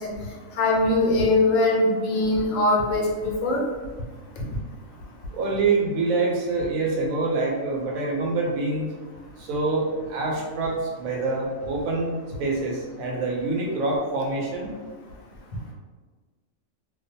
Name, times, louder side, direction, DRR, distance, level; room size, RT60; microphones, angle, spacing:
voice 1, 0.6-3.6, left 2 dB, 75° left, -1 dB, 1.0 m, -21 dB
voice 2, 5.3-8.9 9.4-12.1 12.4-14.7, right 3 dB, 90° right, -1 dB, 1.1 m, -26 dB
2.4 x 2.3 x 2.6 m, 1.4 s
omnidirectional pair, 1.4 m